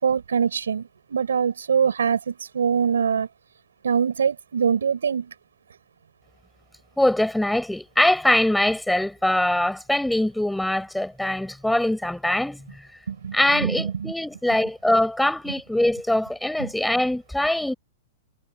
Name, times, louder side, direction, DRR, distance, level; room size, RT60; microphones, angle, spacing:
voice 1, 0.0-3.3 3.8-5.3 13.1-14.1 16.6-16.7, right 7 dB, 80° right, 5.2 m, -24 dB
voice 2, 7.0-12.6 13.3-17.7, left 1 dB, 5° left, 4.9 m, -22 dB
hypercardioid pair, 110°, 0 cm